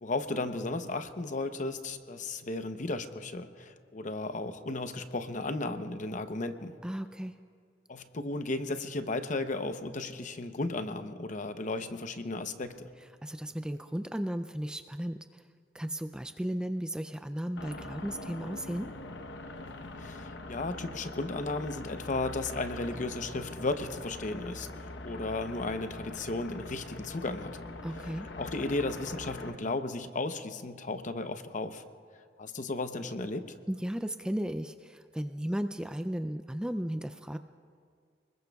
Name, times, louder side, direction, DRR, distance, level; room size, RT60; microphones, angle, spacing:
voice 1, 0.0-6.7 7.9-12.9 20.0-27.6 28.0-31.8 32.4-33.6, left 2 dB, 45° left, 9 dB, 0.8 m, -35 dB
voice 2, 6.8-7.3 13.2-15.4 15.7-18.9 27.8-28.3 33.7-37.4, equal, 5° right, 9 dB, 0.3 m, -35 dB
sound 1, 17.6-29.5, left 2 dB, 80° left, 1.0 m, -43 dB
29.0 x 20.5 x 2.3 m, 2.1 s
head